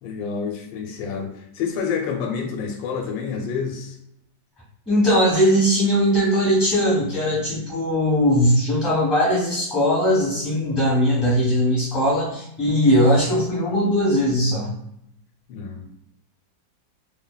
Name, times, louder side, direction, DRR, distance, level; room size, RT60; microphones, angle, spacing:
voice 1, 0.0-4.0 12.6-12.9 15.5-15.8, left 6 dB, 85° left, 3 dB, 1.3 m, -28 dB
voice 2, 4.9-14.7, equal, ahead, -7 dB, 1.0 m, -19 dB
2.7 x 2.6 x 2.2 m, 0.75 s
omnidirectional pair, 2.0 m